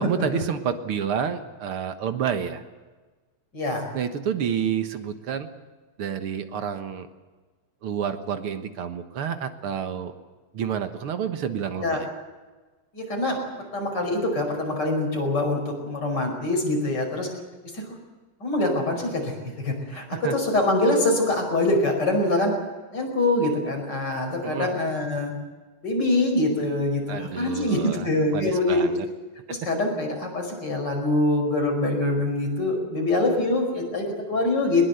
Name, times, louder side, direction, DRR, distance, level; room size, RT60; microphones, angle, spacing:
voice 1, 0.0-2.6 3.9-5.5 6.0-7.1 7.8-10.1 10.5-12.1 20.1-20.4 24.4-24.7 27.1-28.1 28.3-29.1 29.5-29.6, right 8 dB, 80° right, 8 dB, 2.3 m, -29 dB
voice 2, 3.5-3.9 11.8-12.0 12.9-13.4 13.7-17.3 17.7-17.8 18.4-22.5 22.9-25.3 25.8-28.9 29.5-34.9, left 2 dB, 50° left, 2 dB, 6.0 m, -24 dB
21.5 x 21.0 x 8.1 m, 1.3 s
omnidirectional pair, 2.4 m